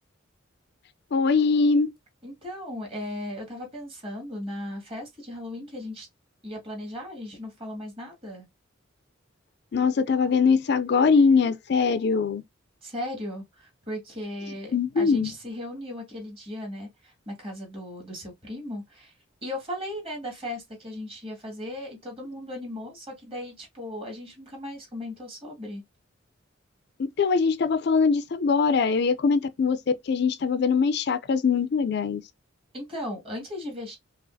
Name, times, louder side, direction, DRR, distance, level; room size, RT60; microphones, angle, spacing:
voice 1, 1.1-1.9 9.7-12.4 14.7-15.3 27.2-29.8 30.1-32.2, left 5 dB, 55° left, 0.4 m, -22 dB
voice 2, 2.2-6.1 6.4-8.5 12.8-19.1 19.4-25.8 32.7-34.0, left 1 dB, 30° right, 2.0 m, -37 dB
5.4 x 2.4 x 2.6 m
head